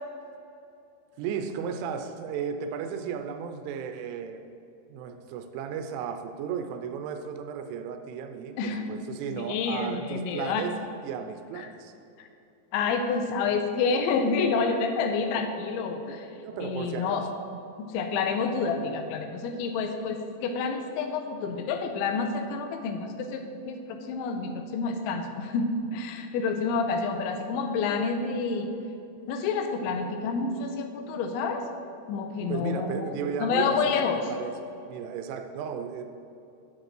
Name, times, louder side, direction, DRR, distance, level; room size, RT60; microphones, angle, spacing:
voice 1, 1.2-4.5 4.9-10.8 11.0-11.9 16.4-17.3 32.5-33.9 34.3-36.1, right 7 dB, 90° right, 7 dB, 3.0 m, -34 dB
voice 2, 8.6-9.1 9.3-10.6 11.6-11.7 12.2-12.3 12.7-16.3 16.6-17.3 17.8-28.7 29.3-31.6 32.1-33.1 33.4-34.2, left 5 dB, 85° left, 6 dB, 2.9 m, -29 dB
8.1 x 5.2 x 7.4 m, 2.7 s
omnidirectional pair, 5.4 m